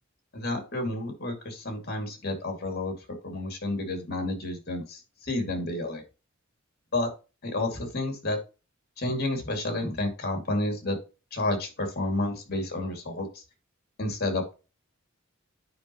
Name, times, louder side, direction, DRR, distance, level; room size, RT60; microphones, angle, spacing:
voice 1, 0.3-2.9 3.2-6.0 6.9-7.1 7.4-8.4 9.0-11.0 11.3-13.4 14.0-14.5, left 2 dB, 50° left, 4 dB, 2.2 m, -30 dB
9.4 x 5.3 x 2.9 m, 0.31 s
head